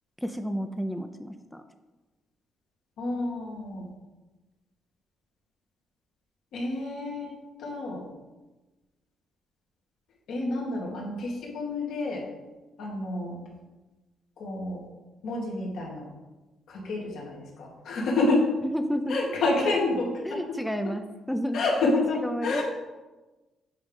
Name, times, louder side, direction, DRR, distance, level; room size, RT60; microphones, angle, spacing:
voice 1, 0.2-1.6 18.6-19.2 19.6-19.8 20.2-21.6 22.2-22.6, equal, ahead, 7 dB, 0.5 m, -31 dB
voice 2, 3.0-3.9 6.5-7.4 7.6-8.0 10.3-12.2 12.8-13.4 14.4-14.8 15.2-16.1 16.7-18.5 19.1-20.4 21.5-22.6, left 2 dB, 75° left, -1 dB, 1.9 m, -28 dB
8.1 x 3.5 x 5.4 m, 1.1 s
cardioid pair, 90°, 0 cm